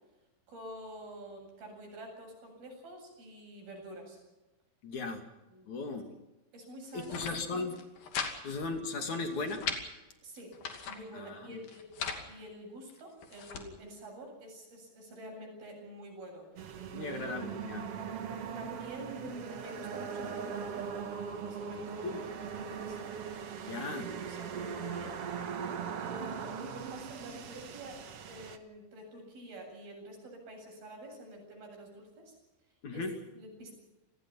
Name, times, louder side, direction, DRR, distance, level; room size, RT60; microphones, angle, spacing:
voice 1, 0.5-4.2 5.5-6.0 6.5-7.4 10.2-10.6 10.9-11.9 12.3-16.5 16.9-17.7 18.4-21.1 21.5-23.0 24.2-25.2 26.0-32.3 32.9-33.0 33.3-33.7, right 1 dB, 80° right, 2 dB, 9.9 m, -48 dB
voice 2, 4.8-5.2 5.7-6.0 6.9-7.8 8.4-9.7 11.1-11.6 16.9-17.9 22.0-22.2 23.6-24.1 32.8-33.2, left 3 dB, 55° left, 5 dB, 3.7 m, -37 dB
sound 1, 6.9-7.4 7.7-8.3 8.6-8.7 9.1-9.8 10.4-11.0 11.6-12.2 12.9-13.7, left 6 dB, 70° left, 4.3 m, -38 dB
sound 2, 16.6-28.6, right 7 dB, 50° right, 2.0 m, -40 dB
29.0 x 19.5 x 5.9 m, 1.0 s
omnidirectional pair, 4.2 m